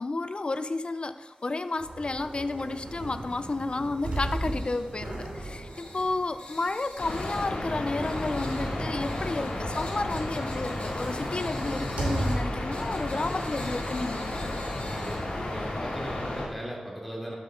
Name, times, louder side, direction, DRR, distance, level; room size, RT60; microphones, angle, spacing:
voice 1, 0.0-14.6, left 3 dB, 45° left, 10 dB, 0.5 m, -32 dB
sound 1, 1.2-16.1, left 2 dB, 70° left, 2.4 m, -49 dB
sound 2, 1.8-12.8 13.2-13.3 14.8-15.7, right 1 dB, 80° right, 2.8 m, -37 dB
sound 3, 7.0-16.5, left 1 dB, 90° left, 2.6 m, -33 dB
voice 2, 15.0-17.3, equal, ahead, -4 dB, 3.5 m, -38 dB
12.5 x 8.1 x 3.8 m, 1.2 s
wide cardioid pair, 70°, 2 cm